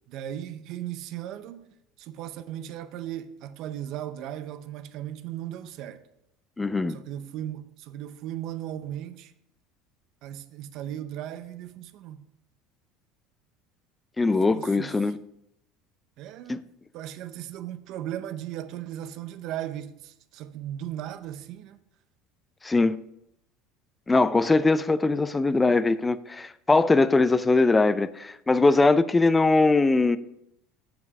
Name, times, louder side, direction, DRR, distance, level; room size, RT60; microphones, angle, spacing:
voice 1, 0.1-1.7 2.0-6.0 6.9-9.3 10.2-12.2 14.2-14.9 16.2-16.7 16.9-21.8, right 11 dB, 60° right, 0.6 m, -37 dB
voice 2, 6.6-7.0 14.2-15.2 16.5-16.6 22.6-23.0 24.1-30.2, left 3 dB, 15° left, 0.4 m, -21 dB
7.3 x 5.9 x 5.3 m
supercardioid pair, 100°, 0 cm